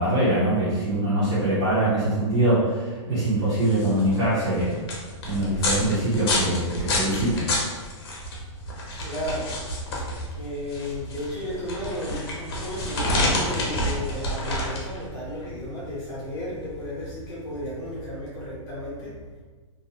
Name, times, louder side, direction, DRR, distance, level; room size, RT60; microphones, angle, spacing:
voice 1, 0.0-4.8 5.2-7.5, right 1 dB, 45° right, -11 dB, 0.8 m, -23 dB
sound 1, 3.4-18.0, left 1 dB, 50° left, 0.7 m, -29 dB
voice 2, 9.0-9.5 9.8-9.9 10.2-19.1, equal, 20° left, -8 dB, 0.8 m, -33 dB
2.6 x 2.1 x 2.8 m, 1.4 s
hypercardioid pair, 180°, 16 cm